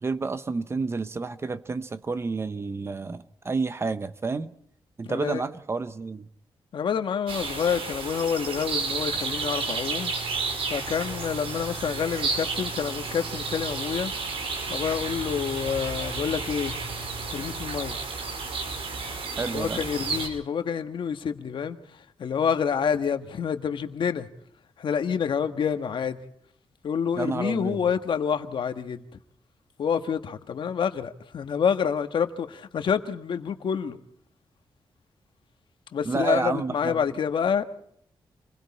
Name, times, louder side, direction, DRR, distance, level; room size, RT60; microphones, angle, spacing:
voice 1, 0.0-4.5 5.0-6.3 19.4-19.8 27.1-27.8 36.0-37.0, right 4 dB, 30° right, 0.8 m, -30 dB
voice 2, 5.0-5.4 6.7-10.1 10.7-14.1 14.7-16.8 17.3-18.0 19.5-21.8 22.2-24.3 24.8-26.2 26.8-29.0 29.8-34.0 35.9-37.6, left 7 dB, 60° left, 1.5 m, -27 dB
sound 1, 7.3-20.3, right 4 dB, 90° right, 4.9 m, -32 dB
29.0 x 21.5 x 4.2 m
wide cardioid pair, 170°, 9 cm